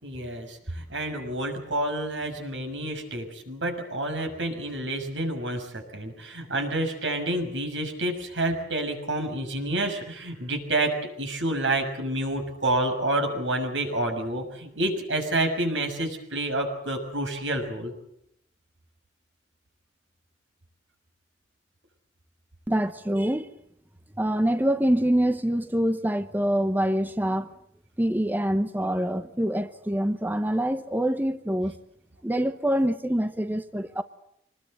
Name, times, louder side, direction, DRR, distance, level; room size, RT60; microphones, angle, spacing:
voice 1, 0.0-17.9, right 1 dB, 85° right, 6.5 m, -29 dB
voice 2, 22.7-23.5 24.2-27.5 28.0-31.7 32.2-34.0, right 1 dB, 10° right, 0.8 m, -25 dB
26.0 x 20.0 x 7.9 m
head